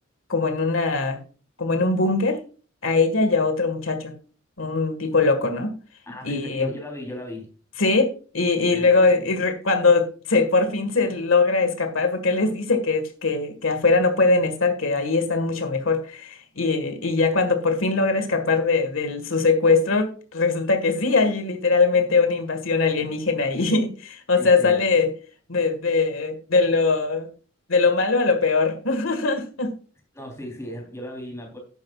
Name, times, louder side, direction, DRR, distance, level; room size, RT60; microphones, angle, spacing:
voice 1, 0.3-1.2 1.6-2.4 2.8-4.1 4.6-5.7 6.2-6.7 7.8-25.1 25.5-27.3 27.7-29.7, left 3 dB, 80° left, 7 dB, 1.7 m, -21 dB
voice 2, 6.1-7.5 8.7-9.0 24.3-24.8 30.1-31.6, left 1 dB, 15° left, 2 dB, 3.5 m, -36 dB
11.5 x 10.5 x 2.4 m, 0.38 s
head